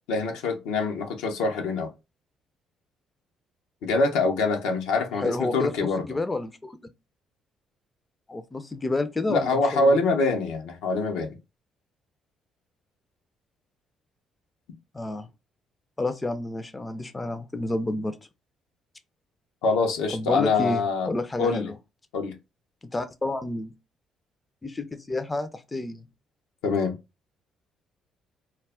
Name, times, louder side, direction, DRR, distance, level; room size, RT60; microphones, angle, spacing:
voice 1, 0.1-1.9 3.8-6.1 9.3-11.4 19.6-21.1 21.4-21.7 22.1-22.4 26.6-26.9, left 3 dB, 80° left, 0.6 m, -24 dB
voice 2, 5.2-6.8 8.3-10.0 14.9-15.3 16.0-18.2 20.1-21.8 22.9-23.7 24.6-26.1, left 2 dB, 25° left, 0.4 m, -30 dB
2.2 x 2.0 x 3.4 m
hypercardioid pair, 55°, 0 cm